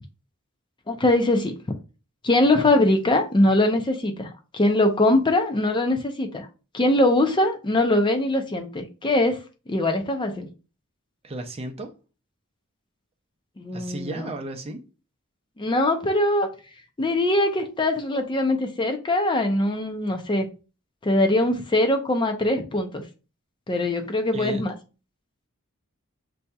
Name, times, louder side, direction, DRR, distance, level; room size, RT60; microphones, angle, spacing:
voice 1, 0.9-1.8 2.2-6.5 6.7-9.4 9.7-10.5 13.6-14.3 15.6-16.5 17.0-20.5 21.0-23.0 23.7-24.7, left 1 dB, 20° left, 0.4 m, -22 dB
voice 2, 11.2-11.9 13.7-14.8 24.3-24.6, right 2 dB, 30° right, 0.6 m, -34 dB
6.7 x 2.7 x 2.2 m
head